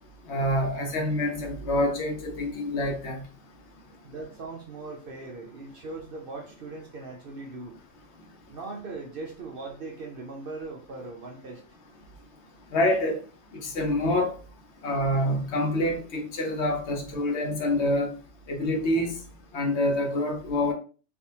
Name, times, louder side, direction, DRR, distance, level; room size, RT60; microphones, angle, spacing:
voice 1, 0.3-3.2 12.7-13.2 13.5-14.3 14.8-18.1 18.5-19.1 19.5-20.7, left 1 dB, 65° left, 1.0 m, -26 dB
voice 2, 4.0-7.8 8.5-11.6, right 3 dB, 55° right, 0.7 m, -39 dB
3.4 x 2.5 x 2.8 m
omnidirectional pair, 1.3 m